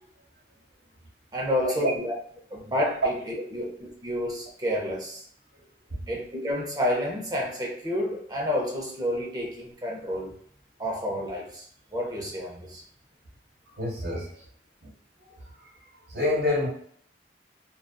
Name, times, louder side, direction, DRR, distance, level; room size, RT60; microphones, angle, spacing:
voice 1, 1.3-2.1 2.5-5.2 6.1-10.4 10.8-12.8, left 1 dB, 20° right, -1 dB, 0.6 m, -30 dB
voice 2, 13.7-14.4 14.8-14.9 15.5-16.7, left 1 dB, 75° right, -3 dB, 1.0 m, -29 dB
2.5 x 2.3 x 2.2 m, 0.62 s
head